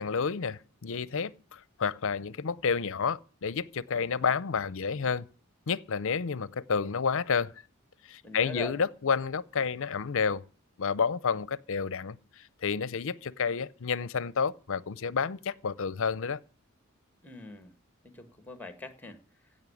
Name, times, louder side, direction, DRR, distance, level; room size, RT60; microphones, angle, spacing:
voice 1, 0.0-5.3 5.7-7.5 8.1-10.4 10.8-12.2 12.6-16.4, left 5 dB, 65° left, 0.6 m, -30 dB
voice 2, 8.2-8.8 17.2-17.7 18.0-19.2, left 3 dB, 10° left, 1.5 m, -42 dB
16.5 x 5.5 x 9.7 m
head